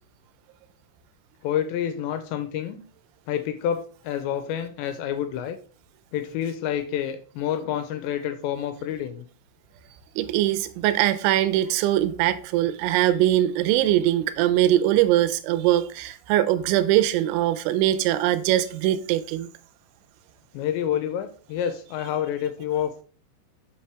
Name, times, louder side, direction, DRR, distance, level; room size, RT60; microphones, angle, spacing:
voice 1, 1.4-2.8 3.3-5.6 6.1-9.3 20.5-23.0, left 9 dB, 85° left, 2.7 m, -28 dB
voice 2, 10.2-19.5, right 13 dB, 85° right, 3.0 m, -22 dB
6.7 x 5.7 x 3.4 m
omnidirectional pair, 5.4 m